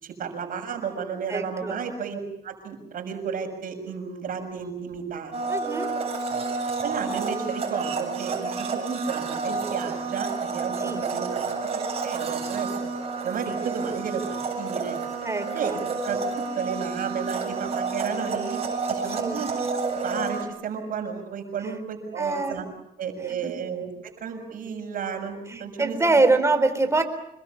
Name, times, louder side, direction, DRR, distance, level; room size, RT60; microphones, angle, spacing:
voice 1, 0.0-5.4 6.8-11.5 12.0-12.9 13.2-15.0 15.5-18.6 18.9-19.5 19.9-22.6 23.0-26.2, right 6 dB, 55° right, 6 dB, 6.9 m, -33 dB
voice 2, 1.3-1.8 5.5-5.9 10.8-11.0 15.2-15.8 19.1-19.4 22.2-22.6 23.4-23.5 25.5-27.0, right 3 dB, 15° right, 8 dB, 4.1 m, -24 dB
Domestic sounds home sounds, 5.3-20.4, right 4 dB, 35° right, 7.8 m, -30 dB
27.0 x 22.0 x 8.6 m, 0.81 s
cardioid pair, 110°, 17 cm